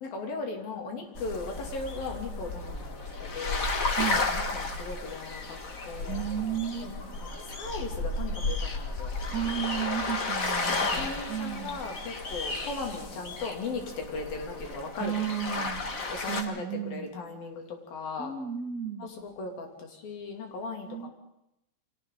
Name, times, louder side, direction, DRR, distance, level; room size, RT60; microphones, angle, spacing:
voice 1, 0.0-2.9 3.2-3.7 4.3-5.6 5.9-6.2 6.8-9.1 10.2-10.4 10.7-15.1 15.5-15.7 16.1-17.6 17.9-18.3 19.0-21.1, left 3 dB, 85° left, 2 dB, 4.6 m, -38 dB
sound 1, 1.1-16.4, left 3 dB, 40° left, 1.2 m, -33 dB
voice 2, 3.9-4.2 6.1-7.2 9.3-11.8 15.0-15.8 16.3-17.1 18.2-19.1 20.9-21.1, right 9 dB, 30° right, 1 dB, 2.2 m, -33 dB
29.5 x 24.0 x 3.9 m, 0.83 s
omnidirectional pair, 4.0 m